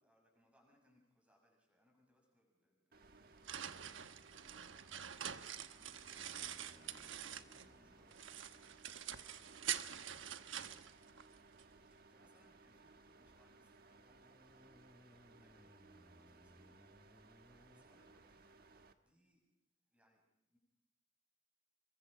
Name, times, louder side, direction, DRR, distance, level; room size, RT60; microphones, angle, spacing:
voice 1, 0.0-19.4 19.9-20.6, equal, 5° right, 0 dB, 6.9 m, -75 dB
sound 1, 2.9-18.9, right 3 dB, 50° right, 1.4 m, -63 dB
sound 2, 3.0-7.8 8.1-11.6, right 9 dB, 85° right, 1.1 m, -46 dB
sound 3, 6.1-8.5 13.8-17.8, left 1 dB, 10° left, 0.8 m, -66 dB
28.0 x 23.0 x 5.0 m, 0.81 s
head